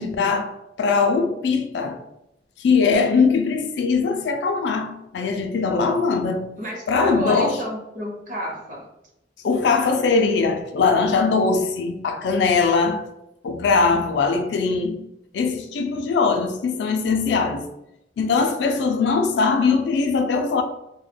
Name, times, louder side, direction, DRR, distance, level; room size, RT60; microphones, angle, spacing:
voice 1, 0.0-2.0 2.6-6.5 6.9-7.6 9.4-13.1 13.4-15.1 15.3-17.7 18.2-20.6, left 4 dB, 65° left, 0.3 m, -21 dB
voice 2, 6.6-8.9, equal, 45° right, 0.7 m, -30 dB
2.2 x 2.1 x 3.2 m
head